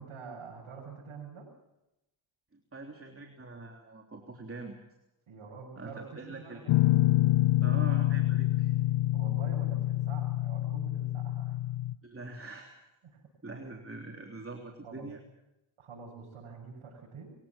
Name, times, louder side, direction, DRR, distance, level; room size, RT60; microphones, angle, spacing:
voice 1, 0.0-1.5 5.3-6.8 9.1-11.6 13.0-13.2 13.5-13.7 14.8-15.1 15.8-17.3, right 5 dB, 75° right, -4 dB, 7.5 m, -46 dB
voice 2, 2.5-4.8 5.7-6.6 7.6-8.7 12.0-12.7 13.4-15.2, right 3 dB, 25° right, 3 dB, 3.4 m, -44 dB
Guitar, 6.7-11.9, left 15 dB, 80° left, 0.7 m, -27 dB
26.0 x 16.5 x 7.4 m, 0.90 s
cardioid pair, 60°, 50 cm